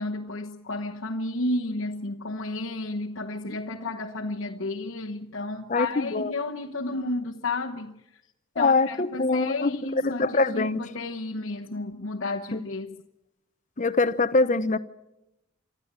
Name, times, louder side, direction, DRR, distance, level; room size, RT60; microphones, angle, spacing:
voice 1, 0.0-8.0 8.5-13.0, left 2 dB, 70° left, 1.1 m, -32 dB
voice 2, 5.7-6.3 8.6-9.8 10.0-10.8 12.5-12.6 13.8-14.8, left 3 dB, 35° left, 0.8 m, -23 dB
24.5 x 13.5 x 8.8 m
head